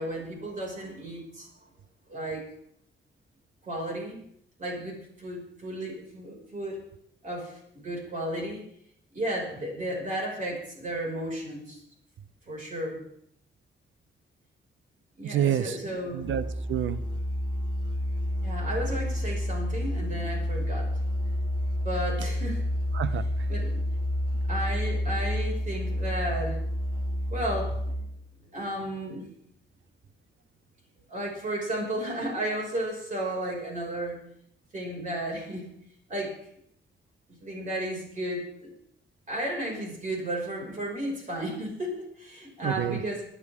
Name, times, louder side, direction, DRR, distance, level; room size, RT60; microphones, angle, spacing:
voice 1, 0.0-1.5 2.1-2.4 3.7-4.3 4.6-6.8 7.2-8.6 9.1-11.8 12.5-13.0 15.2-16.3 18.4-20.9 21.8-22.6 23.5-23.8 24.5-26.6 27.3-27.7 28.5-29.2 31.1-34.2 34.7-35.7 36.1-36.3 37.4-38.7 39.3-43.3, right 1 dB, 40° right, -2 dB, 5.8 m, -33 dB
voice 2, 15.2-15.8 16.1-17.0 22.9-23.2 42.6-43.0, right 10 dB, 90° right, 14 dB, 0.8 m, -28 dB
Musical instrument, 16.2-28.2, left 1 dB, 20° right, 3.0 m, -29 dB
24.5 x 9.9 x 3.7 m, 0.70 s
wide cardioid pair, 135°, 19 cm